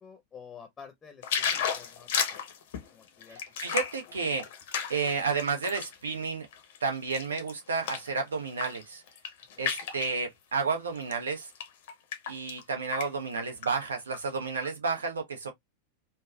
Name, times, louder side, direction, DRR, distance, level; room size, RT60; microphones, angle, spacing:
voice 1, 0.0-2.4 2.9-3.4, left 7 dB, 20° left, 0.7 m, -50 dB
sound 1, 1.2-6.0 6.4-8.1 8.5-8.8 9.1-10.2 11.0-11.1 11.6-12.6 12.9-13.1 13.4-14.2 14.6-14.7, left 7 dB, 55° left, 0.6 m, -33 dB
voice 2, 3.6-4.4 4.9-6.5 6.8-9.0 9.6-11.5 12.3-15.5, right 4 dB, 70° right, 0.7 m, -31 dB
3.3 x 2.1 x 2.2 m
figure-of-eight pair, 90°, 0 cm